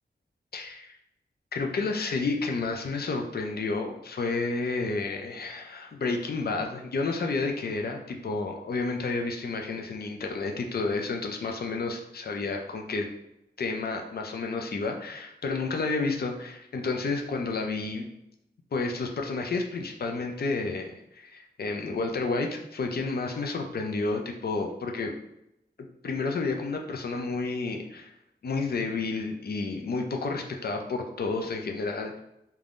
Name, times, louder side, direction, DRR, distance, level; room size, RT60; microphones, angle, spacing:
voice 1, 0.5-1.0 1.5-13.1 13.6-18.1 18.7-25.1 26.0-28.1 28.4-32.2, left 3 dB, 60° left, 3 dB, 0.4 m, -30 dB
3.3 x 2.2 x 2.5 m, 0.83 s
wide cardioid pair, 80°, 18 cm